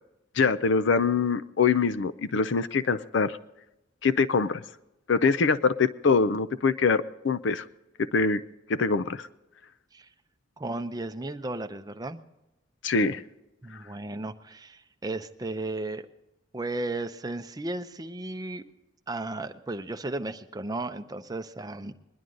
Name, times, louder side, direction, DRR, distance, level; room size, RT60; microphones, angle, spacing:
voice 1, 0.4-3.4 4.0-4.6 5.1-7.6 8.0-8.4 8.7-9.3 12.8-13.2, left 4 dB, 65° left, 0.5 m, -24 dB
voice 2, 10.6-12.2 13.6-16.1 16.5-18.6 19.1-21.9, right 2 dB, 20° right, 0.6 m, -34 dB
21.5 x 11.0 x 3.8 m
head